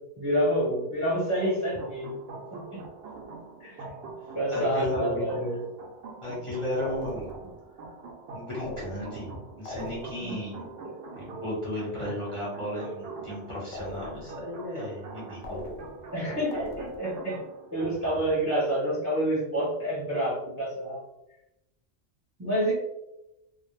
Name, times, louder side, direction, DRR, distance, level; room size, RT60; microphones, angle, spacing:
voice 1, 0.2-2.1 2.5-2.8 3.6-3.9 4.3-5.6 10.2-10.4 10.8-10.9 16.1-17.4 17.7-21.0 22.4-22.7, right 1 dB, 15° right, -6 dB, 0.6 m, -28 dB
sound 1, 1.4-18.2, right 4 dB, 65° right, 0.7 m, -44 dB
voice 2, 4.2-5.3 6.2-7.3 7.8-7.9 8.3-10.6 11.2-15.6, left 1 dB, 30° left, -7 dB, 0.9 m, -34 dB
sound 2, 6.9-7.6 8.6-9.3 9.7-10.4 13.7-14.5 15.4-16.2 16.5-17.2, left 1 dB, 65° left, 0.7 m, -40 dB
2.2 x 2.0 x 3.1 m, 0.89 s
omnidirectional pair, 1.2 m